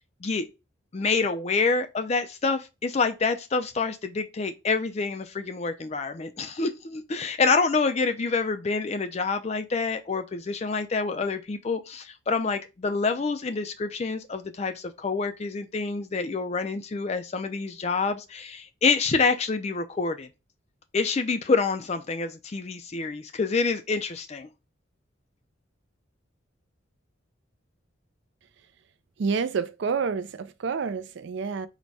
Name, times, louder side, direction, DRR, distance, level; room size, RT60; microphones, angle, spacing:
voice 1, 0.9-20.3 20.9-24.5, left 4 dB, 35° left, 0.4 m, -27 dB
voice 2, 29.2-31.7, right 5 dB, 60° right, 0.4 m, -28 dB
4.0 x 2.2 x 4.6 m
head